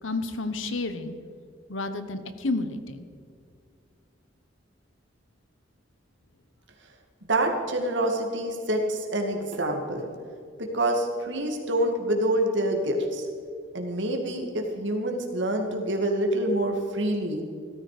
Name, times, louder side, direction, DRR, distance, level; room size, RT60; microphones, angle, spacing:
voice 1, 0.0-1.1 1.7-3.0, left 2 dB, 80° left, 10 dB, 1.2 m, -30 dB
voice 2, 7.3-10.1 10.6-13.3 13.7-17.4, right 1 dB, 65° right, 2 dB, 2.3 m, -26 dB
16.5 x 14.0 x 5.1 m, 2.3 s
head